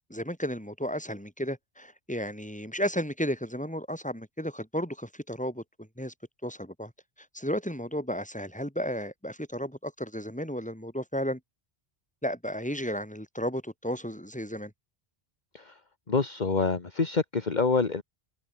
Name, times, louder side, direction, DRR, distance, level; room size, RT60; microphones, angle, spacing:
voice 1, 0.1-6.1 6.4-6.9 7.3-11.4 12.2-14.7, equal, 5° left, 6.1 m, -33 dB
voice 2, 16.1-18.0, left 4 dB, 45° left, 1.7 m, -26 dB
open air
omnidirectional pair, 1.0 m